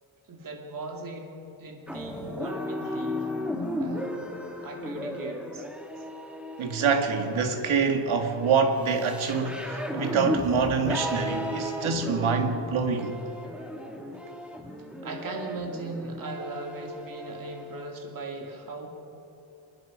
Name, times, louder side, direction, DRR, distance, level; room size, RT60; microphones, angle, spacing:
voice 1, 0.3-3.3 3.8-4.2 4.6-5.7 15.0-18.9, right 2 dB, 45° right, 2.4 m, -38 dB
sound 1, 1.9-17.8, left 1 dB, ahead, 1.7 m, -35 dB
voice 2, 6.6-13.2, right 5 dB, 80° right, 2.1 m, -26 dB
25.5 x 21.0 x 5.1 m
wide cardioid pair, 165°, 48 cm